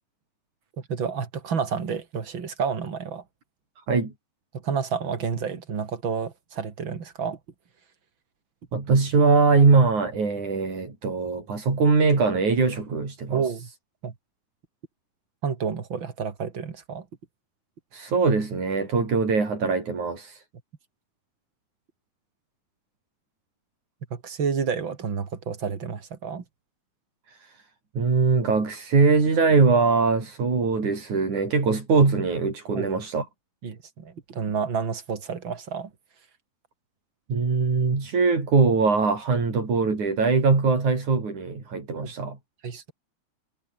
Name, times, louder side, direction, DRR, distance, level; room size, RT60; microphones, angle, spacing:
voice 1, 0.9-3.2 4.6-7.4 13.3-13.7 14.0-14.1 15.4-17.0 24.1-26.4 32.7-32.9 33.6-35.9 42.0-42.1 42.6-42.9, right 6 dB, 45° right, 3.2 m, -30 dB
voice 2, 8.7-13.4 17.9-20.4 27.3-27.6 28.0-33.3 37.3-42.4, right 4 dB, 85° right, 7.3 m, -22 dB
omnidirectional pair, 3.3 m